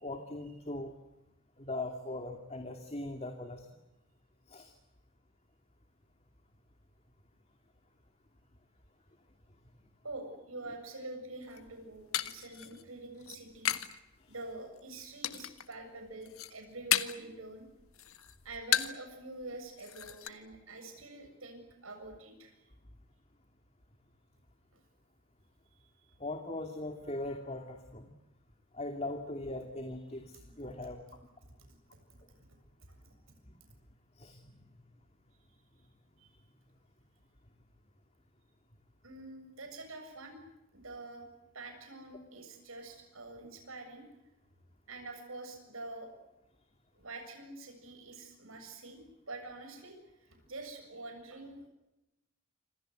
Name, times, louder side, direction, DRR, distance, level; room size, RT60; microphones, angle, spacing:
voice 1, 0.0-0.9 1.6-3.7 4.5-4.7 12.4-12.6 26.2-28.1 28.7-31.0 34.2-34.6, left 2 dB, 30° left, 5 dB, 2.6 m, -40 dB
voice 2, 10.0-13.7 14.3-17.6 18.4-22.5 26.0-26.1 31.9-32.0 32.9-33.0 36.2-36.3 39.0-40.4 40.7-41.3 41.5-44.0 44.9-46.1 46.9-49.0 49.3-51.7, right 2 dB, 75° right, 5 dB, 7.4 m, -46 dB
sound 1, 11.4-14.0 14.3-14.8 15.2-15.7 16.1-17.3 17.7-19.1 19.4-19.5 19.8-20.3, left 10 dB, 85° left, 1.7 m, -34 dB
28.5 x 26.0 x 7.9 m, 0.93 s
head